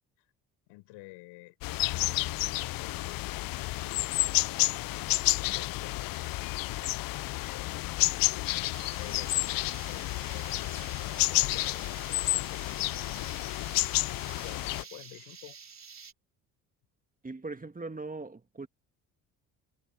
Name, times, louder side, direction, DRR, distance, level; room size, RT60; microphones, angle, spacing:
voice 1, 0.7-1.6 1.9-4.3 5.4-7.6 8.7-13.3 14.4-15.6, left 23 dB, 80° left, 6.4 m, -51 dB
sound 1, 1.6-14.8, left 19 dB, 55° left, 0.5 m, -30 dB
sound 2, 8.7-16.1, right 6 dB, 40° right, 3.9 m, -49 dB
sound 3, 10.4-11.8, right 15 dB, 70° right, 5.9 m, -63 dB
voice 2, 17.2-18.7, right 3 dB, 20° right, 2.1 m, -40 dB
hypercardioid pair, 60°, 43 cm